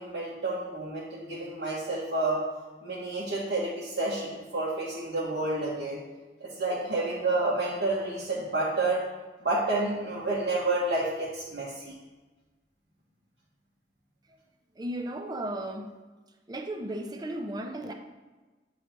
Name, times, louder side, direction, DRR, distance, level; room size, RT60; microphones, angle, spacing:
voice 1, 0.0-2.4 2.8-6.0 6.4-9.0 9.4-11.9, right 2 dB, 75° right, -9 dB, 1.4 m, -29 dB
voice 2, 14.7-16.0 16.5-17.9, right 1 dB, 25° right, 4 dB, 0.5 m, -35 dB
9.1 x 3.2 x 4.3 m, 1.2 s
head